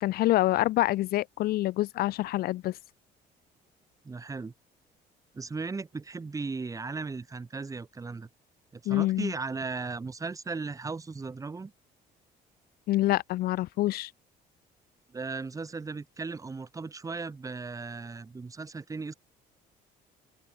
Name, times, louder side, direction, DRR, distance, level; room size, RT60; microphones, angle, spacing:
voice 1, 0.0-2.7 8.9-9.3 12.9-14.1, left 16 dB, 65° left, 0.5 m, -26 dB
voice 2, 4.0-4.5 5.3-8.3 8.7-11.7 15.1-19.1, right 4 dB, 20° right, 1.2 m, -36 dB
open air
cardioid pair, 110°, 17 cm